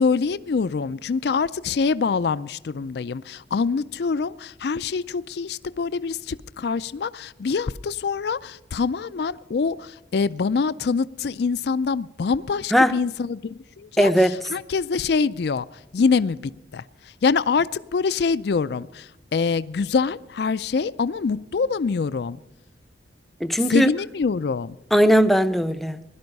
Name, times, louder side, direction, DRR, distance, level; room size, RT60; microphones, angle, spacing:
voice 1, 0.0-15.6 15.9-16.4 16.7-22.4 23.7-24.8, left 5 dB, 60° left, 0.4 m, -25 dB
voice 2, 14.0-14.4 23.4-23.9 24.9-26.0, equal, ahead, 0.5 m, -18 dB
16.5 x 12.0 x 5.3 m
head